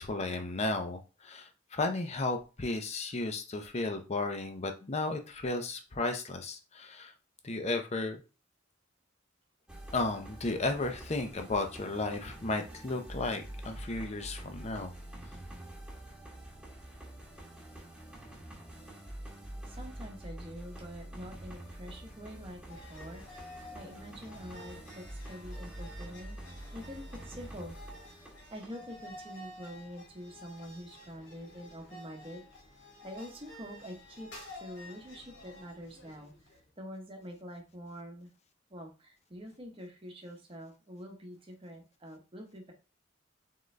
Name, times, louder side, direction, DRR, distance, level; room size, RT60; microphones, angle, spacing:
voice 1, 0.0-7.1 7.4-8.2 9.9-14.9, left 2 dB, 35° left, 6 dB, 0.7 m, -34 dB
sound 1, 9.7-28.9, right 1 dB, 5° right, 1.1 m, -46 dB
voice 2, 19.7-27.8 28.5-32.4 33.0-38.3 38.7-42.7, equal, 30° right, 2 dB, 1.0 m, -46 dB
sound 2, 22.7-36.7, left 1 dB, 65° left, 1.7 m, -51 dB
3.8 x 3.7 x 3.2 m, 0.32 s
head